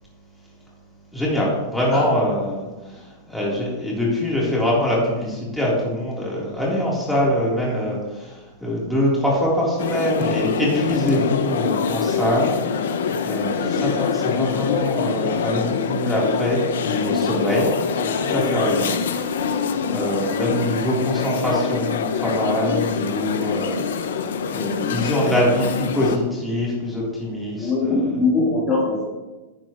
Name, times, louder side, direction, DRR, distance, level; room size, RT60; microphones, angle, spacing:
voice 1, 1.1-3.0 3.3-12.9 13.2-17.7 18.0-19.0 19.3-23.8 24.5-27.7, left 1 dB, ahead, -7 dB, 3.5 m, -23 dB
sound 1, 9.8-26.2, left 6 dB, 75° left, 0.8 m, -24 dB
voice 2, 13.6-13.9 18.7-19.0 27.6-29.1, left 3 dB, 35° left, -4 dB, 3.3 m, -22 dB
11.0 x 8.6 x 3.1 m, 1.1 s
hypercardioid pair, 110°, 0 cm